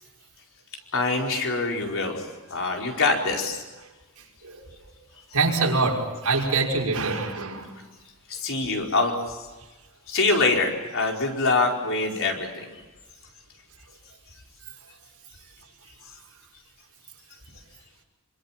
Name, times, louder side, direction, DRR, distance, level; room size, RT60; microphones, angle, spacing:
voice 1, 0.9-3.6 8.3-9.4 10.1-12.7, left 3 dB, 65° left, 1 dB, 4.8 m, -25 dB
voice 2, 5.3-7.8, right 3 dB, 90° right, -1 dB, 5.9 m, -24 dB
28.0 x 25.0 x 7.5 m, 1.1 s
head